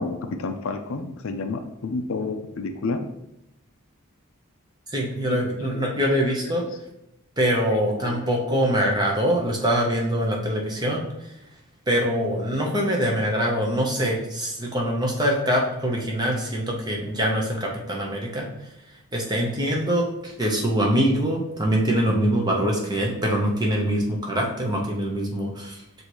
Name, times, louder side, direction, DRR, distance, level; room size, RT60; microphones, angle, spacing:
voice 1, 0.0-3.0 5.3-5.9 6.3-6.7 7.7-8.2, left 3 dB, 70° left, 7 dB, 0.4 m, -31 dB
voice 2, 4.9-6.6 7.4-11.0 11.9-18.5 19.1-25.8, equal, 20° right, -1 dB, 0.7 m, -24 dB
6.4 x 2.6 x 3.0 m, 0.84 s
head